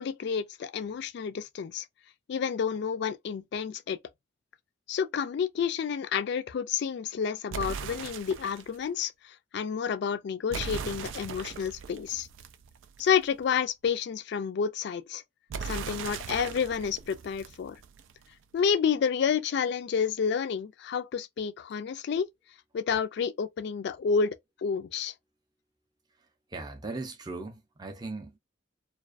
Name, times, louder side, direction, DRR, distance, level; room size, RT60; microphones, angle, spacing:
voice 1, 0.0-1.9 2.3-4.0 4.9-12.3 13.0-15.2 15.6-17.8 18.5-22.3 22.7-24.4 24.6-25.1, left 6 dB, 60° left, 0.3 m, -30 dB
sound 1, 7.5-8.8 10.5-13.2 15.5-18.2, right 6 dB, 90° right, 0.3 m, -39 dB
voice 2, 26.5-28.4, right 3 dB, 20° right, 0.5 m, -38 dB
2.3 x 2.2 x 2.4 m
head